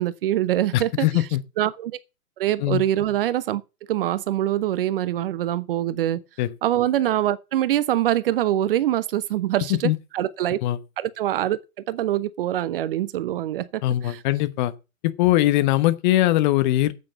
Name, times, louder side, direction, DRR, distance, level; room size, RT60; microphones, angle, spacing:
voice 1, 0.0-1.3 1.6-2.0 2.4-3.6 3.9-6.2 6.6-10.6 11.0-11.6 11.9-14.2, right 13 dB, 40° right, 0.7 m, -24 dB
voice 2, 0.7-1.4 2.6-2.8 6.4-6.5 9.8-10.0 10.6-10.8 13.8-14.7 15.0-16.9, left 15 dB, 35° left, 1.0 m, -21 dB
9.2 x 8.3 x 5.6 m
hypercardioid pair, 125°, 43 cm